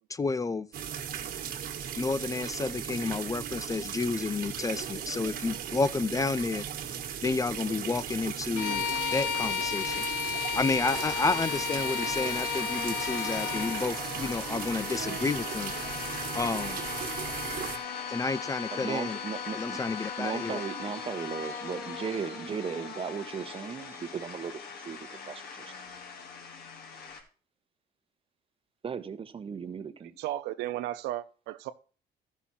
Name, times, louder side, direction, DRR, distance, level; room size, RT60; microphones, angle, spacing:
voice 1, 0.1-0.7 2.0-15.7 16.3-16.8 18.1-19.2 19.5-20.6, left 3 dB, 20° left, 0.4 m, -31 dB
sound 1, 0.7-17.8, right 9 dB, 60° right, 1.6 m, -37 dB
Bowed string instrument, 8.5-13.9, left 8 dB, 85° left, 1.6 m, -32 dB
sound 2, 10.8-27.2, left 6 dB, 65° left, 2.7 m, -39 dB
voice 2, 18.7-19.8 20.2-25.7 28.8-30.1, right 6 dB, 35° right, 1.1 m, -37 dB
voice 3, 30.2-31.7, right 14 dB, 90° right, 0.8 m, -34 dB
13.5 x 6.1 x 4.3 m
cardioid pair, 110°, 17 cm